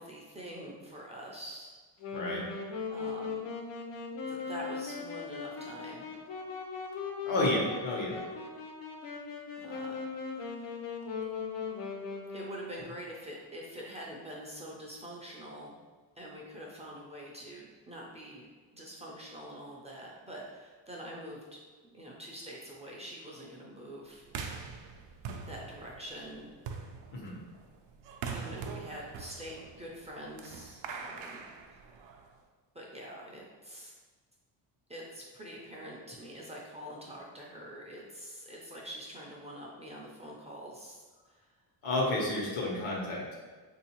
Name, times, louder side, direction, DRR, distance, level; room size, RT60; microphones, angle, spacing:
voice 1, 0.0-1.7 2.9-3.4 4.2-6.1 7.2-7.5 9.6-10.7 12.3-15.8 16.2-18.5 18.7-21.6 21.9-24.3 25.5-26.5 28.3-31.4 32.7-33.9 34.9-41.5, equal, 15° right, -4 dB, 0.4 m, -45 dB
Wind instrument woodwind instrument, 2.0-12.9, left 5 dB, 70° left, 0.7 m, -39 dB
voice 2, 2.1-2.5 7.3-8.2 27.1-27.4 41.8-43.4, left 1 dB, 85° left, -2 dB, 1.1 m, -31 dB
sound 1, 24.3-32.4, right 5 dB, 75° right, 0.5 m, -43 dB
3.5 x 2.7 x 2.9 m, 1.4 s
cardioid pair, 135°, 44 cm